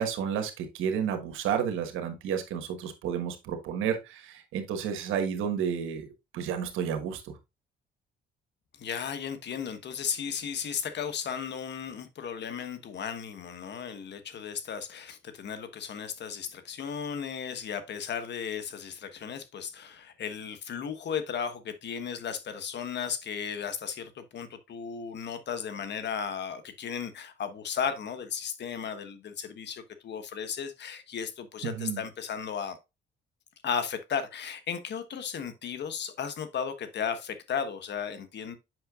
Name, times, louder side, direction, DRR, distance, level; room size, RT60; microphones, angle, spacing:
voice 1, 0.0-7.4 31.6-32.0, right 8 dB, 90° right, 1.3 m, -31 dB
voice 2, 8.8-32.8 33.6-38.6, left 7 dB, 60° left, 1.2 m, -35 dB
7.7 x 5.7 x 2.4 m
cardioid pair, 90°, 20 cm